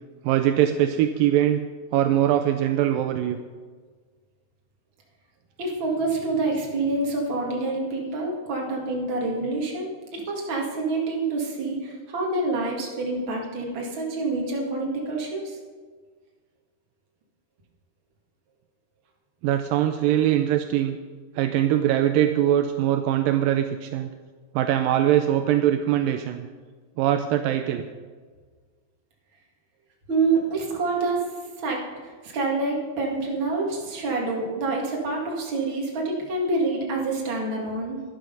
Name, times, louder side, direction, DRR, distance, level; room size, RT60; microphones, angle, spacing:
voice 1, 0.2-1.7 1.9-3.4 19.4-21.0 21.4-24.1 24.5-26.5 27.0-27.9, right 11 dB, 85° right, 8 dB, 2.0 m, -22 dB
voice 2, 5.6-15.6 30.1-31.3 31.6-38.0, right 3 dB, 40° right, -1 dB, 2.3 m, -27 dB
12.0 x 11.5 x 5.4 m, 1.5 s
omnidirectional pair, 4.5 m